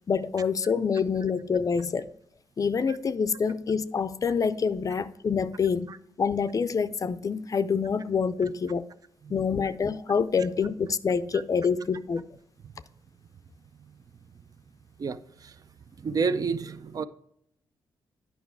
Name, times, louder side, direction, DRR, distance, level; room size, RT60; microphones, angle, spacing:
voice 1, 0.1-2.1 2.6-5.9 6.2-8.9 9.3-12.3, left 6 dB, 40° left, 0.5 m, -26 dB
voice 2, 15.0-15.6 16.0-17.1, right 5 dB, 45° right, 0.5 m, -31 dB
9.6 x 5.6 x 4.6 m
cardioid pair, 90°, 9 cm